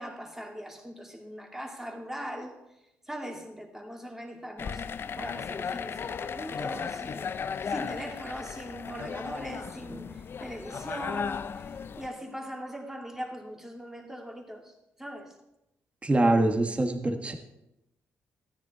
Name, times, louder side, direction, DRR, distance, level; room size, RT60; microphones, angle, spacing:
voice 1, 0.0-2.6 3.1-4.8 5.2-7.3 7.6-14.7 15.0-15.3, equal, 5° right, 1 dB, 2.6 m, -40 dB
sound 1, 4.6-12.1, left 6 dB, 50° left, 0.5 m, -36 dB
voice 2, 16.0-17.3, right 2 dB, 25° right, 5 dB, 1.5 m, -24 dB
13.0 x 10.5 x 4.3 m, 0.90 s
cardioid pair, 70°, 5 cm